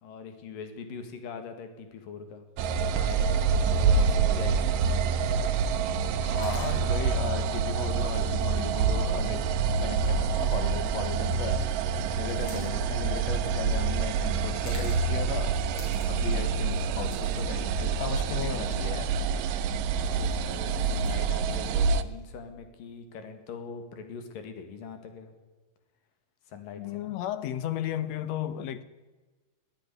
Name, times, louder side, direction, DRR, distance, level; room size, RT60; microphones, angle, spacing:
voice 1, 0.0-2.5 2.8-4.8 16.3-16.7 19.6-25.3 26.5-27.2, left 5 dB, 90° left, 3.7 m, -42 dB
sound 1, 2.6-22.0, right 5 dB, 80° right, 2.5 m, -27 dB
sound 2, 3.1-22.2, left 1 dB, 40° left, 6.7 m, -55 dB
voice 2, 6.2-9.5 9.8-11.7 12.1-15.7 16.0-19.1 26.8-28.8, left 10 dB, 70° left, 1.7 m, -36 dB
21.5 x 13.0 x 9.8 m
omnidirectional pair, 3.8 m